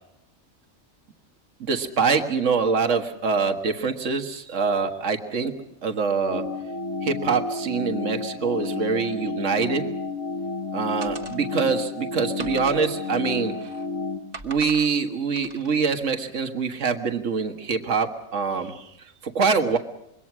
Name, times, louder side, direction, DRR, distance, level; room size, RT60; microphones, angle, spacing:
voice 1, 1.6-5.5 5.8-6.4 7.0-9.9 10.7-13.5 14.4-19.8, right 5 dB, 60° right, 6 dB, 2.0 m, -24 dB
sound 1, 6.3-14.2, left 4 dB, 60° left, 2.2 m, -31 dB
sound 2, 11.0-11.8 12.4-13.9 14.3-14.9 15.4-15.8, right 3 dB, 30° right, 1.6 m, -42 dB
26.5 x 23.0 x 6.2 m, 0.82 s
omnidirectional pair, 1.4 m